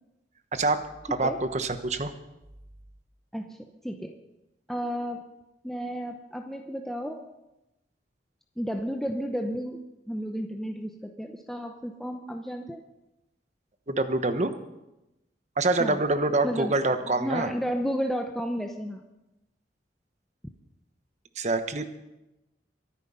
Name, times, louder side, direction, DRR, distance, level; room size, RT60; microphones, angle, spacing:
voice 1, 0.5-0.9 1.2-2.1 13.9-14.5 15.6-17.5 21.4-21.9, right 2 dB, 40° right, 9 dB, 1.1 m, -26 dB
voice 2, 1.1-1.4 3.3-4.2 4.7-5.2 5.6-7.3 8.6-12.8 15.8-16.0 16.4-16.7 17.2-19.1, equal, ahead, 3 dB, 0.8 m, -32 dB
24.0 x 9.1 x 5.6 m, 0.96 s
head